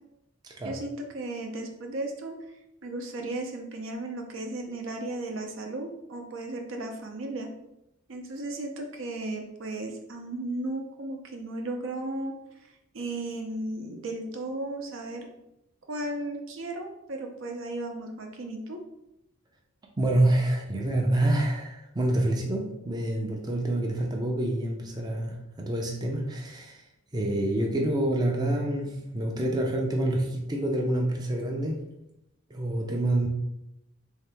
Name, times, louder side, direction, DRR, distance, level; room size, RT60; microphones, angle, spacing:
voice 1, 0.6-2.4 2.8-7.5 8.1-12.3 12.9-15.3 15.9-18.8, right 2 dB, 70° right, 3 dB, 0.6 m, -35 dB
voice 2, 20.0-26.8 27.1-31.8 32.5-33.3, right 1 dB, 20° right, 0 dB, 0.5 m, -27 dB
3.7 x 2.8 x 3.4 m, 0.85 s
head